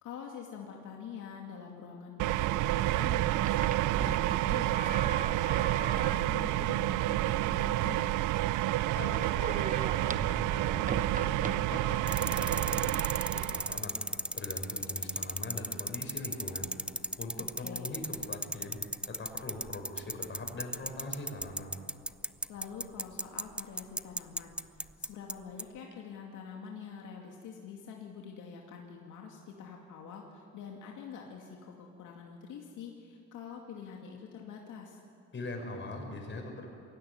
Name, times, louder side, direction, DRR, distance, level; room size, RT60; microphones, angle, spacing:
voice 1, 0.0-8.1 17.4-18.0 22.5-24.6 25.0-35.0, left 6 dB, 85° left, 0 dB, 2.5 m, -46 dB
sound 1, 2.2-13.8, right 16 dB, 85° right, 0.5 m, -29 dB
sound 2, 3.3-12.5, right 4 dB, 25° right, 0.9 m, -41 dB
voice 2, 9.0-12.9 13.3-14.0 14.3-16.7 17.2-21.7 35.3-36.7, left 2 dB, 40° left, 2 dB, 5.7 m, -41 dB
Bike hub, 12.1-25.3 25.6-25.7, right 1 dB, 5° right, 0.5 m, -34 dB
22.5 x 16.5 x 9.5 m, 2.4 s
cardioid pair, 90°, 30 cm